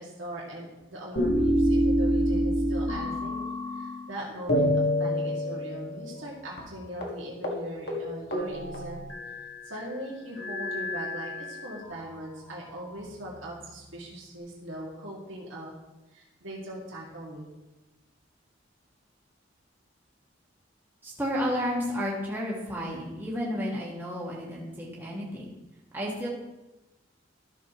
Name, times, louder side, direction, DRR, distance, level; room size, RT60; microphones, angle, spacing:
voice 1, 0.0-3.4 3.7-15.7 16.1-17.5, right 1 dB, 85° right, -4 dB, 2.1 m, -40 dB
sound 1, 1.2-4.1 4.5-6.3 6.6-6.7 7.0-7.2 7.4-7.6 7.9-9.6 10.4-11.9 12.7-13.6, equal, 55° left, 1.6 m, -28 dB
voice 2, 21.0-25.5 25.9-26.3, equal, 10° right, -5 dB, 1.6 m, -32 dB
13.5 x 6.8 x 3.0 m, 1.0 s
head